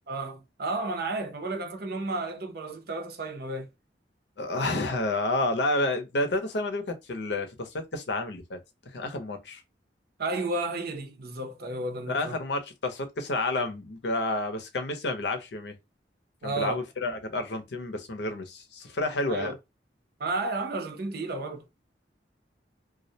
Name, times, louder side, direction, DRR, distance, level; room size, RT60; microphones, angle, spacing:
voice 1, 0.1-3.7 10.2-12.4 16.4-16.8 19.3-19.6 20.2-21.6, right 2 dB, 60° right, 0.6 m, -32 dB
voice 2, 4.4-8.6 8.9-9.6 12.1-15.7 16.4-19.5, left 2 dB, 70° left, 0.6 m, -30 dB
2.3 x 2.1 x 2.7 m
head